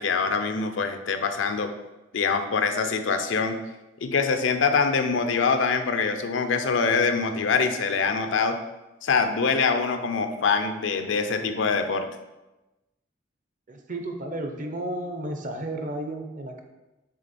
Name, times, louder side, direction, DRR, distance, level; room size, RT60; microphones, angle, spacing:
voice 1, 0.0-1.7 2.1-3.6 4.0-8.6 9.0-12.1, left 5 dB, 80° left, 8 dB, 0.6 m, -24 dB
voice 2, 13.7-16.6, right 1 dB, 45° right, 5 dB, 0.7 m, -33 dB
6.4 x 3.7 x 4.2 m, 1.0 s
head